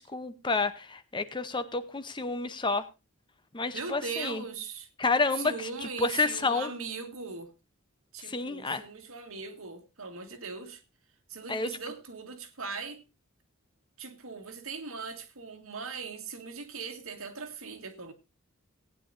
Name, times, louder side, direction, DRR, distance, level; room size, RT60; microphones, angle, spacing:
voice 1, 0.0-2.8 3.5-4.4 5.0-6.7 8.2-8.8 11.5-11.7, left 3 dB, 20° left, 0.7 m, -30 dB
voice 2, 3.7-4.9 5.4-7.5 8.1-10.8 11.3-13.0 14.0-18.1, right 4 dB, 85° right, 1.7 m, -40 dB
18.0 x 9.3 x 2.6 m
head